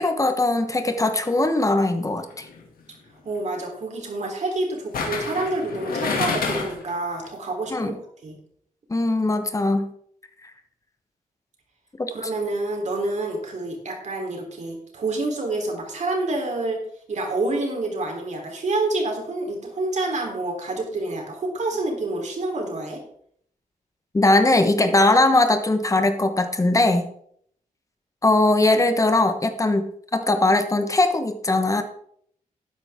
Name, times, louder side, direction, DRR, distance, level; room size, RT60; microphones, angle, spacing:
voice 1, 0.0-2.5 7.7-7.9 8.9-9.9 12.0-12.1 24.1-27.1 28.2-29.9 30.1-31.8, left 2 dB, 20° left, 8 dB, 1.1 m, -20 dB
sound 1, 2.3-2.6 4.9-6.9 7.2-7.3, left 4 dB, 85° left, 2.4 m, -27 dB
voice 2, 3.2-8.0 8.2-8.3 12.1-16.8 17.1-23.0, right 2 dB, 55° right, 1 dB, 3.5 m, -28 dB
12.0 x 9.9 x 3.6 m, 0.64 s
wide cardioid pair, 120°, 15 cm